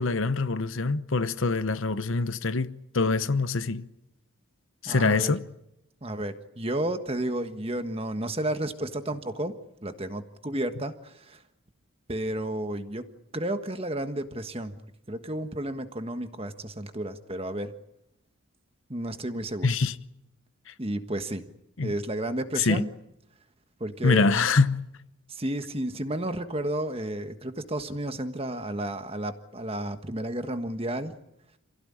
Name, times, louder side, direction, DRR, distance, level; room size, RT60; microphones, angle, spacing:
voice 1, 0.0-3.9 4.8-5.4 19.6-19.9 21.8-21.9 22.6-22.8 24.0-24.8, left 3 dB, 65° left, 0.9 m, -24 dB
voice 2, 4.8-5.3 6.0-9.5 9.8-11.4 12.1-13.1 13.3-14.8 15.1-17.7 18.9-19.7 20.8-21.5 21.8-22.9 23.8-24.3 25.3-31.1, right 1 dB, 25° right, 1.5 m, -32 dB
28.0 x 16.5 x 10.0 m
head